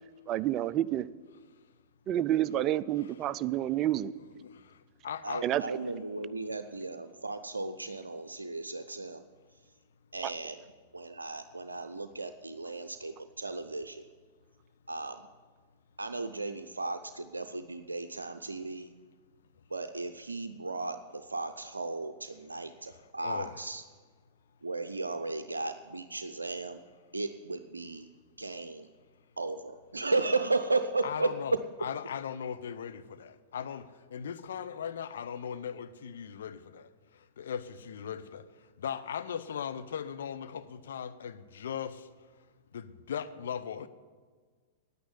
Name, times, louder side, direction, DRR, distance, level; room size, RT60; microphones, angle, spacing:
voice 1, 0.3-1.1 2.1-4.1 5.4-5.6, right 12 dB, 35° right, 0.4 m, -29 dB
voice 2, 4.2-5.5 23.2-23.6 31.0-31.5 31.8-38.5 38.8-42.1 42.7-43.9, left 8 dB, 70° left, 0.7 m, -38 dB
voice 3, 5.2-9.3 10.1-10.6 10.9-14.0 14.9-15.2 16.0-18.9 19.7-23.8 24.6-26.8 27.1-28.1 28.4-28.9 29.4-31.6, right 3 dB, 85° right, 0.5 m, -35 dB
9.6 x 9.4 x 9.6 m
figure-of-eight pair, 100°, 0 cm